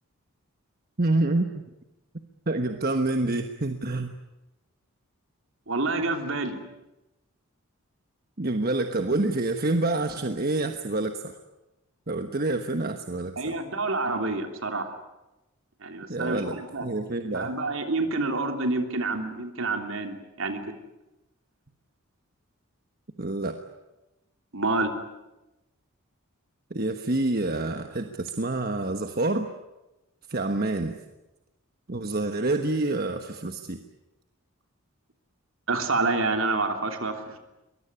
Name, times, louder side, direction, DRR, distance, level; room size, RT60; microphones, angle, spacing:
voice 1, 1.0-1.5 2.5-4.1 8.4-11.4 12.1-13.5 16.1-17.5 23.2-23.6 26.7-29.5 30.3-31.0 31.9-33.8, right 2 dB, 45° right, 6 dB, 1.3 m, -27 dB
voice 2, 5.7-6.6 13.4-14.9 15.8-16.9 17.3-20.6 24.5-24.9 35.7-37.4, right 3 dB, 65° right, 5 dB, 3.2 m, -28 dB
23.5 x 21.0 x 9.8 m, 1.0 s
head